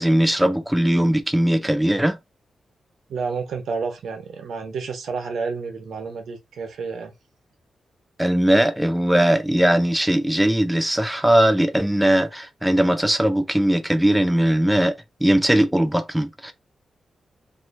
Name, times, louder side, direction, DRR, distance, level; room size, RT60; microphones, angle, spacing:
voice 1, 0.0-2.2 8.2-14.9 15.2-16.5, right 1 dB, 5° right, 0.4 m, -19 dB
voice 2, 3.1-7.1, right 5 dB, 80° right, 1.0 m, -30 dB
2.8 x 2.4 x 4.1 m
wide cardioid pair, 125°, 0 cm